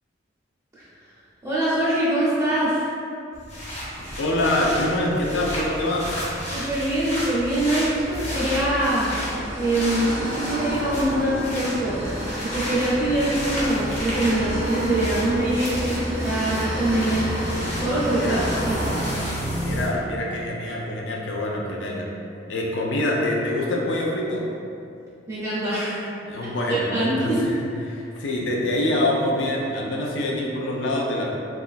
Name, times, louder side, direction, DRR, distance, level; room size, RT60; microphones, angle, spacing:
voice 1, 1.4-2.9 6.5-9.1 9.6-12.1 12.4-17.3 17.8-18.4 18.6-18.8 25.3-26.1 26.7-27.4, right 1 dB, 15° right, -10 dB, 0.5 m, -24 dB
sound 1, 3.3-19.9, equal, 35° left, 0.6 m, -31 dB
voice 2, 4.2-6.1 18.1-18.4 19.6-22.1 22.5-24.4 26.2-31.4, left 1 dB, 75° left, -2 dB, 0.4 m, -25 dB
sound 2, 7.8-19.1, equal, 70° right, 0.5 m, -33 dB
2.9 x 2.4 x 2.4 m, 2.6 s
head